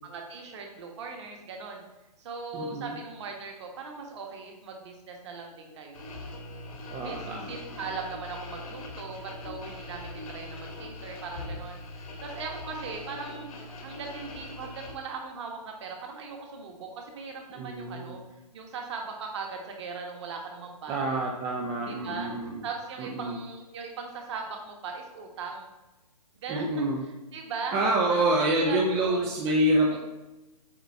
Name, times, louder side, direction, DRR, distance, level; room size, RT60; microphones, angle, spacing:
voice 1, 0.0-1.8 2.2-6.1 7.0-7.2 7.5-18.2 18.5-21.2 21.9-22.3 22.6-25.7 26.4-26.8 27.3-27.8 28.1-29.3 29.9-30.0, right 4 dB, 45° right, 2 dB, 1.4 m, -39 dB
voice 2, 2.5-3.0 6.9-7.6 17.6-18.2 20.9-22.6 23.0-23.4 26.5-27.0 27.7-30.0, right 1 dB, 15° right, -1 dB, 0.5 m, -27 dB
sound 1, 5.9-14.9, left 2 dB, 60° left, 1.7 m, -41 dB
8.1 x 3.4 x 4.4 m, 1.0 s
hypercardioid pair, 140°, 21 cm